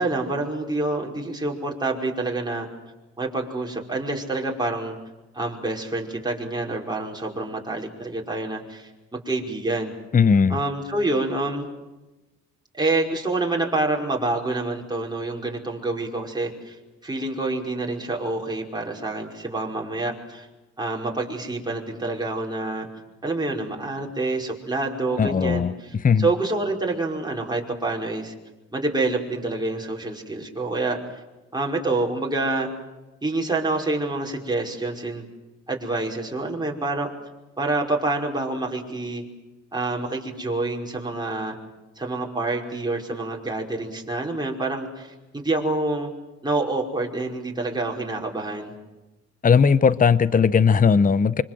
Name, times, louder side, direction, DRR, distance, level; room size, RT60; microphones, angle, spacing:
voice 1, 0.0-2.7 3.2-5.0 5.3-9.9 10.5-11.7 12.7-16.8 17.0-20.5 20.8-22.9 23.2-28.3 28.7-31.0 31.5-32.7 33.2-35.3 35.7-37.1 37.6-39.2 39.7-41.6 42.0-46.1 46.4-48.7, right 2 dB, 15° right, 5.4 m, -27 dB
voice 2, 10.1-10.6 25.2-25.7 26.0-26.3 49.4-51.4, left 6 dB, 25° left, 0.8 m, -18 dB
25.5 x 24.5 x 7.8 m
cardioid pair, 90°, 30 cm